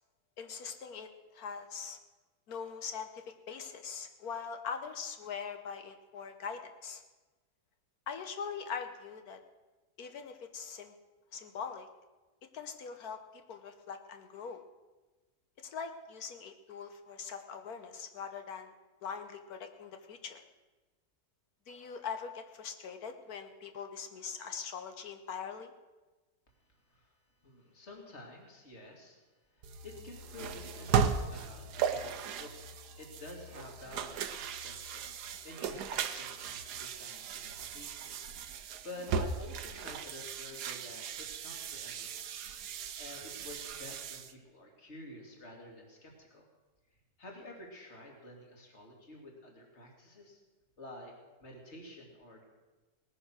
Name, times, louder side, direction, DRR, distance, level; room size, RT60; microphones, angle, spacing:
voice 1, 0.4-2.0 2.5-7.0 8.1-9.4 10.0-10.9 11.3-11.9 12.5-14.6 15.6-18.7 19.0-20.4 21.7-25.7, left 6 dB, 70° left, 7 dB, 1.4 m, -42 dB
voice 2, 27.4-29.2 29.5-32.5 33.0-38.2 38.5-42.3 43.0-46.4 47.2-50.4 50.8-51.1 51.4-52.4, left 1 dB, 45° left, 1 dB, 2.9 m, -50 dB
sound 1, 29.6-44.3, right 6 dB, 85° right, 1.4 m, -37 dB
18.5 x 9.8 x 6.2 m, 1.2 s
omnidirectional pair, 1.7 m